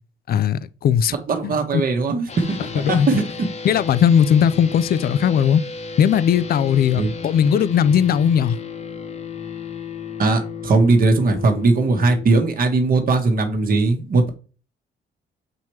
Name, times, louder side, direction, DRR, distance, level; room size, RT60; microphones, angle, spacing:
voice 1, 0.3-1.1 1.4-1.8 2.8-3.1 3.6-5.6 6.0-8.6, left 8 dB, 50° left, 0.4 m, -18 dB
voice 2, 1.3-2.6 2.9-3.3 7.0-7.1 10.2-14.3, right 3 dB, 45° right, 1.3 m, -19 dB
sound 1, 2.3-12.2, left 5 dB, 35° left, 1.0 m, -33 dB
7.5 x 2.9 x 4.6 m
cardioid pair, 90°, 20 cm